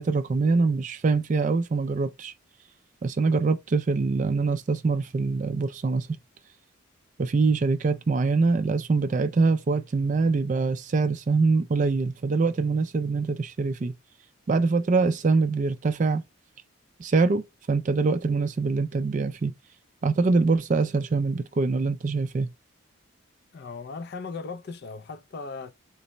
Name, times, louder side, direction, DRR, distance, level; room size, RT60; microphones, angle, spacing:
voice 1, 0.0-2.3 3.0-6.1 7.2-13.9 14.5-16.2 17.0-19.5 20.0-22.5, right 4 dB, 35° right, 0.3 m, -24 dB
voice 2, 23.5-25.7, left 4 dB, 50° left, 0.4 m, -37 dB
3.9 x 2.1 x 3.9 m
head